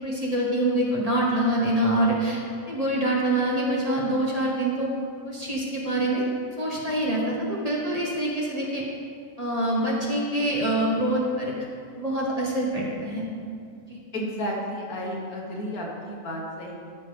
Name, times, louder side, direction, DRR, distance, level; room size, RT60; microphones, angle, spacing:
voice 1, 0.0-2.4 2.7-4.9 5.2-6.2 6.6-8.8 9.4-11.5 12.0-13.2 13.9-14.0, right 1 dB, 25° right, -4 dB, 1.3 m, -25 dB
voice 2, 14.1-16.7, equal, 70° left, -3 dB, 1.9 m, -32 dB
13.5 x 6.0 x 3.4 m, 2.3 s
omnidirectional pair, 1.6 m